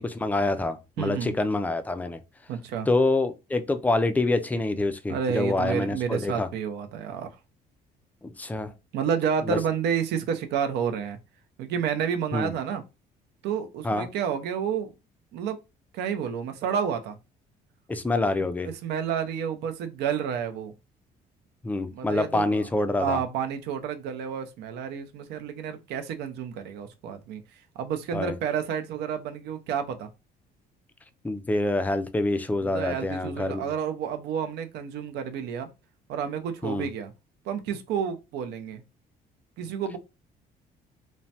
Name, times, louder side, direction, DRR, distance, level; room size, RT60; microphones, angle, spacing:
voice 1, 0.0-2.2 2.9-6.5 8.2-8.7 9.4-9.6 12.3-12.5 13.8-14.1 17.9-18.7 21.6-23.2 28.1-28.3 31.2-33.7 36.6-36.9, left 2 dB, 10° left, 0.3 m, -26 dB
voice 2, 1.0-1.3 2.5-2.9 5.1-7.3 8.9-11.2 11.6-12.8 13.4-14.9 15.3-15.6 15.9-17.2 18.4-20.7 21.9-22.6 23.0-27.4 27.8-30.1 32.6-35.7 36.1-37.1 37.5-38.8 39.6-40.0, right 7 dB, 80° right, 0.5 m, -30 dB
3.1 x 2.1 x 2.7 m
cardioid pair, 110°, 17 cm